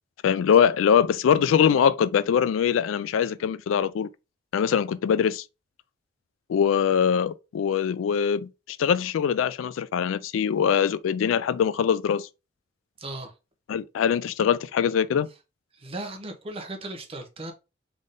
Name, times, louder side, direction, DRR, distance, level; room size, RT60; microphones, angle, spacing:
voice 1, 0.2-4.1 4.5-5.4 6.5-12.3 13.7-15.3, left 8 dB, 90° left, 0.3 m, -23 dB
voice 2, 13.0-13.3 15.7-17.5, right 2 dB, 30° right, 0.7 m, -36 dB
3.5 x 2.6 x 3.6 m
head